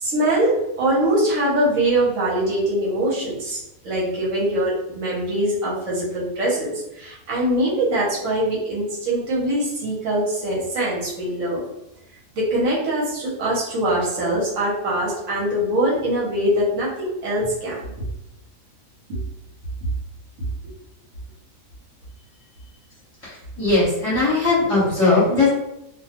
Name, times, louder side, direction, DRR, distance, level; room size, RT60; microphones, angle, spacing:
voice 1, 0.0-11.6 12.3-18.1 19.1-19.2, right 1 dB, 70° right, -6 dB, 1.1 m, -23 dB
voice 2, 23.2-25.5, left 3 dB, 25° left, -10 dB, 1.1 m, -19 dB
2.4 x 2.2 x 2.8 m, 0.85 s
omnidirectional pair, 1.4 m